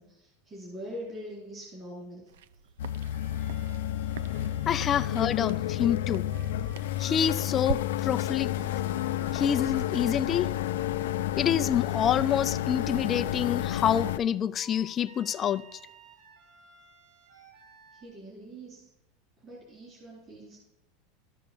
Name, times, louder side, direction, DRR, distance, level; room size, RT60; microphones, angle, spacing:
voice 1, 0.0-2.3 17.9-18.9 19.4-20.6, equal, 20° right, 4.0 m, -43 dB
sound 1, 2.3-7.8, right 5 dB, 90° right, 0.6 m, -42 dB
sound 2, 2.8-14.2, left 12 dB, 85° left, 0.5 m, -30 dB
sound 3, 3.1-5.7 6.3-10.5 11.3-13.4 14.5-18.0, right 4 dB, 75° right, 4.5 m, -56 dB
voice 2, 4.7-6.3 7.0-8.5 9.3-10.5 11.4-15.7, left 9 dB, 25° left, 0.4 m, -27 dB
13.0 x 6.7 x 7.1 m
supercardioid pair, 160°, 0 cm